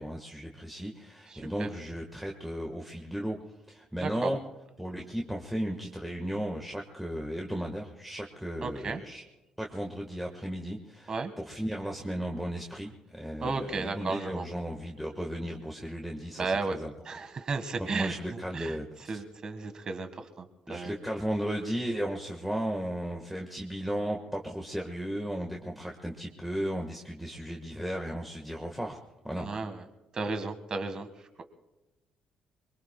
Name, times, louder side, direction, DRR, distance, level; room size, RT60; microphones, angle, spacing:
voice 1, 0.0-3.4 3.7-4.4 4.8-9.2 9.6-16.9 17.8-18.9 19.1-19.2 20.7-29.0 29.2-29.5, equal, ahead, 1 dB, 1.4 m, -35 dB
voice 2, 1.3-1.7 4.0-4.3 8.6-9.0 11.1-11.3 13.4-14.4 16.4-16.8 17.0-18.8 19.1-21.0 29.4-29.8 30.1-31.1, right 4 dB, 40° right, 8 dB, 1.5 m, -34 dB
25.5 x 22.5 x 2.2 m, 1.1 s
cardioid pair, 120°, 2 cm